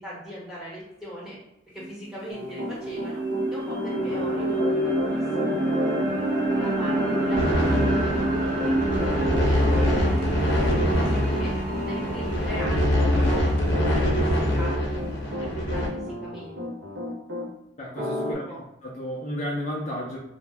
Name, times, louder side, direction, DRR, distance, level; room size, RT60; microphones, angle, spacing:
voice 1, 0.0-1.4 1.7-3.2 3.5-5.6 6.6-7.8 8.0-11.5 11.8-15.0 15.4-16.6 18.3-18.6, equal, ahead, -7 dB, 1.0 m, -39 dB
sound 1, 1.8-1.9 2.3-14.4, right 1 dB, 45° right, 0.5 m, -28 dB
Piano, 2.3-17.5 18.0-18.3, left 1 dB, 90° right, 0.6 m, -34 dB
sound 2, 7.3-15.9, equal, 80° left, 0.7 m, -24 dB
voice 2, 17.8-20.2, equal, 40° left, -5 dB, 0.5 m, -33 dB
2.7 x 2.0 x 3.3 m, 0.86 s
head